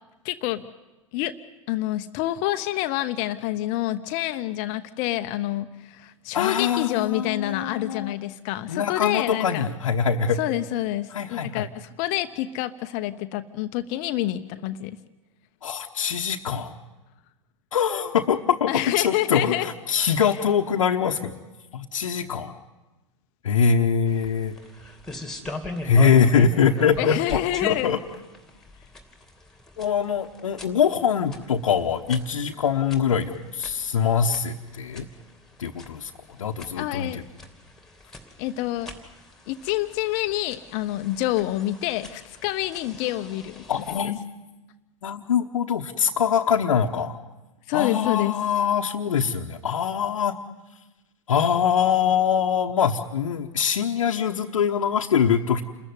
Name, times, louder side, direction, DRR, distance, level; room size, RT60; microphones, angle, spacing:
voice 1, 0.2-0.6 1.1-1.4 1.7-9.7 10.4-15.0 18.7-19.7 27.0-27.9 36.7-37.2 38.4-38.9 39.5-44.1 47.7-48.4, left 15 dB, 45° left, 10 dB, 0.8 m, -27 dB
voice 2, 6.3-8.1 8.7-10.4 11.1-11.7 15.6-16.7 17.7-18.7 19.0-21.3 21.7-22.5 23.4-24.5 25.8-27.4 27.7-28.0 29.8-35.1 35.6-36.1 36.4-37.2 43.7-44.2 45.0-47.2 47.7-50.4 51.3-55.6, left 7 dB, 75° left, 0 dB, 1.0 m, -23 dB
sound 1, 24.1-44.0, left 1 dB, 5° left, 2.8 m, -40 dB
28.0 x 14.5 x 9.4 m, 1.1 s
figure-of-eight pair, 95°, 17 cm